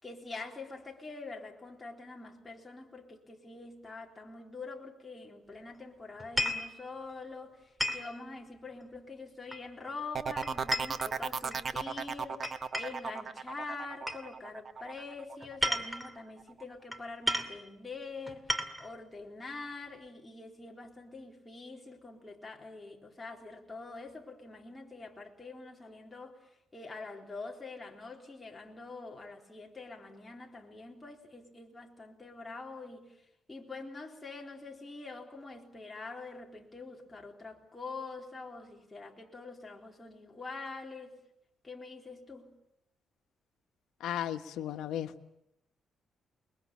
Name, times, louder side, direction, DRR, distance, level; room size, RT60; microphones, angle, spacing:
voice 1, 0.0-33.2 33.5-41.2 41.6-42.5, left 3 dB, 15° left, 3.8 m, -45 dB
sound 1, 6.2-6.7 7.8-8.1 9.5-9.9 10.4-11.6 12.4-13.1 14.1-14.2 15.4-16.1 16.9-17.0 17.3-17.6 18.3-18.9, equal, ahead, 2.5 m, -33 dB
sound 2, 10.1-15.8 16.2-16.6, right 5 dB, 40° right, 1.2 m, -36 dB
voice 2, 44.0-45.1, left 11 dB, 90° left, 1.4 m, -35 dB
29.0 x 22.0 x 7.5 m
cardioid pair, 125°, 0 cm